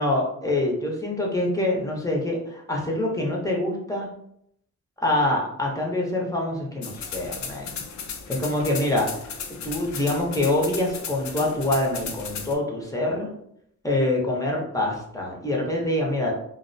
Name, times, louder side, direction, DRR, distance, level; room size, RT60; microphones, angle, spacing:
voice 1, 0.0-4.1 5.0-7.8 8.3-9.3 9.6-13.3 13.8-16.3, left 1 dB, 10° left, -2 dB, 0.7 m, -25 dB
sound 1, 6.8-12.5, left 6 dB, 65° left, 0.5 m, -36 dB
2.3 x 2.1 x 2.5 m, 0.73 s
cardioid pair, 90°, 31 cm